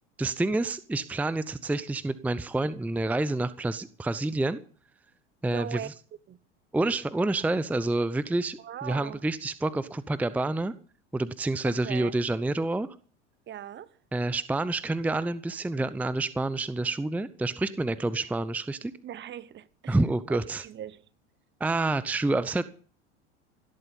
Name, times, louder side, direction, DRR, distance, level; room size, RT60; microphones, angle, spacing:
voice 1, 0.2-4.6 5.4-5.9 6.7-10.7 11.1-13.0 14.1-18.9 19.9-20.6 21.6-22.6, right 2 dB, 5° right, 0.7 m, -28 dB
voice 2, 5.4-5.9 6.3-6.4 8.6-9.2 11.6-12.1 13.5-14.0 19.0-20.0 20.3-21.0, right 11 dB, 30° right, 1.1 m, -40 dB
17.5 x 12.0 x 5.4 m
hypercardioid pair, 80°, 35 cm